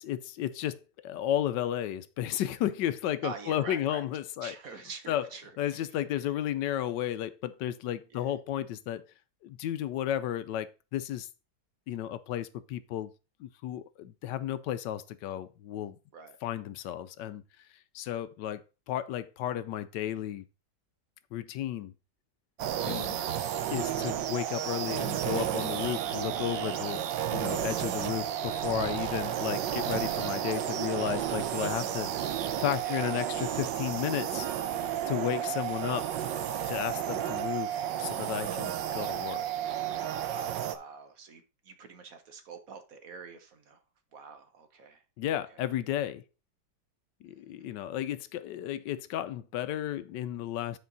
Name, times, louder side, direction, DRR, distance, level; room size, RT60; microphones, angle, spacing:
voice 1, 0.0-4.6 5.1-5.3 5.6-9.1 9.4-11.3 11.9-13.1 13.4-16.0 16.4-17.4 17.9-18.6 18.9-20.4 21.3-21.9 22.9-23.2 23.7-27.0 27.3-34.5 35.1-36.1 36.6-39.4 45.2-46.2 47.2-50.8, left 11 dB, 80° left, 1.2 m, -33 dB
voice 2, 3.2-4.0 4.4-5.9 6.2-6.3 8.1-8.3 16.1-16.4 29.0-29.7 32.8-33.1 40.2-43.8 44.1-45.0 45.5-45.6 47.5-47.7, right 5 dB, 55° right, 1.3 m, -46 dB
sound 1, 22.6-40.8, right 10 dB, 85° right, 1.4 m, -32 dB
9.5 x 4.6 x 3.9 m
omnidirectional pair, 1.9 m